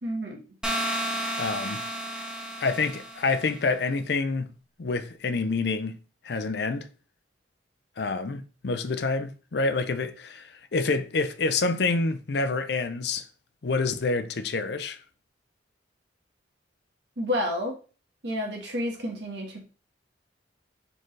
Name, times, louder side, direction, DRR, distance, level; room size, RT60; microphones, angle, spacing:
voice 1, 0.0-0.4 17.2-17.8 18.2-19.6, left 1 dB, 65° right, 1.4 m, -30 dB
sound 1, 0.6-3.5, right 1 dB, 5° right, 0.7 m, -32 dB
voice 2, 1.4-1.8 2.6-4.5 4.8-6.0 6.2-6.9 8.0-13.2 13.6-15.0, left 3 dB, 60° left, 0.5 m, -27 dB
4.3 x 3.8 x 3.2 m
head